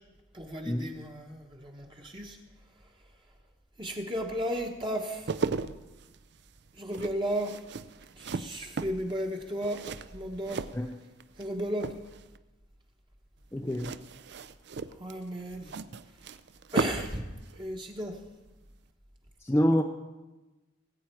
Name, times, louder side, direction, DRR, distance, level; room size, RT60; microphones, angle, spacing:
voice 1, 0.3-2.4 3.8-5.3 6.8-7.5 8.2-9.8 10.1-10.6 11.4-11.9 15.0-15.7 16.7-17.3 17.6-18.2, equal, 25° right, 1 dB, 1.1 m, -34 dB
sound 1, 5.0-11.5 11.7-12.4 13.7-17.2 17.5-17.6, right 4 dB, 55° right, 0.4 m, -36 dB
voice 2, 13.5-13.9 19.4-19.8, equal, 10° left, 3 dB, 0.4 m, -26 dB
19.0 x 8.6 x 4.5 m, 1.1 s
head